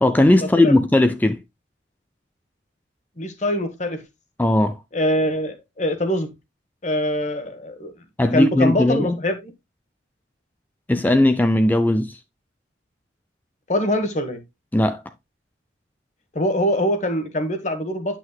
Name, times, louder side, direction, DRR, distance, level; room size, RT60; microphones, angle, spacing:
voice 1, 0.0-1.4 4.4-4.8 8.2-9.2 10.9-12.2 14.7-15.0, left 1 dB, 10° left, 0.3 m, -18 dB
voice 2, 3.2-4.0 4.9-6.3 6.8-7.9 8.3-9.5 13.7-14.4 16.3-18.2, equal, 40° left, 1.2 m, -23 dB
9.4 x 6.0 x 2.2 m
head